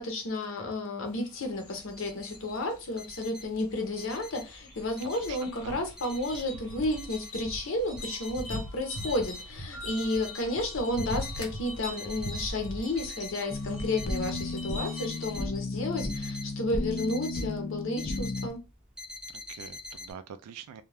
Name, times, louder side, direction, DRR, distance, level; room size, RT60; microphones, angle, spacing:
voice 1, 0.0-18.6, left 2 dB, 60° left, 0.7 m, -32 dB
sound 1, 1.1-15.4, equal, 85° left, 1.2 m, -41 dB
sound 2, 1.4-1.5 1.7-2.4 2.7-4.6 5.0-5.7 6.0-7.6 8.0-8.5 9.0-9.5 9.9-11.5 11.9-12.5 12.8-13.5 13.8-14.5 15.0-17.5 17.7-18.5 19.0-20.1, left 2 dB, 5° right, 0.7 m, -44 dB
voice 2, 5.0-5.8 19.3-20.8, right 7 dB, 90° right, 0.3 m, -45 dB
sound 3, 13.5-18.5, left 2 dB, 30° left, 0.3 m, -34 dB
2.3 x 2.2 x 3.2 m
head